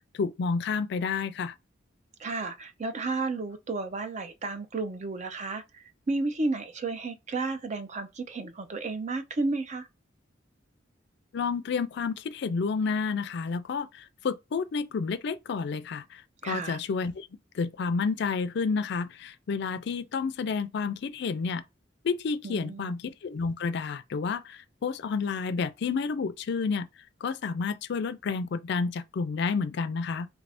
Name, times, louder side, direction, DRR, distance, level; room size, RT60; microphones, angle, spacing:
voice 1, 0.1-1.5 11.3-17.3 17.5-21.6 22.0-26.9 27.2-30.3, left 5 dB, 65° left, 0.4 m, -30 dB
voice 2, 2.2-9.9 16.4-16.8 22.4-22.9, right 3 dB, 40° right, 0.5 m, -32 dB
3.4 x 2.5 x 3.3 m
head